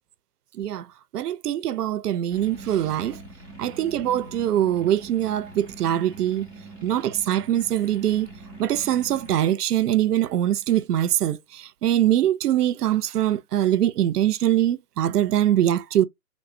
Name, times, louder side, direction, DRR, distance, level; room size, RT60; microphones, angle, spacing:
voice 1, 1.1-3.2 3.6-6.5 6.8-8.3 8.6-16.1, right 12 dB, 80° right, 0.6 m, -23 dB
sound 1, 2.3-9.4, right 2 dB, 10° left, 0.6 m, -43 dB
3.3 x 2.1 x 2.5 m
hypercardioid pair, 155°, 46 cm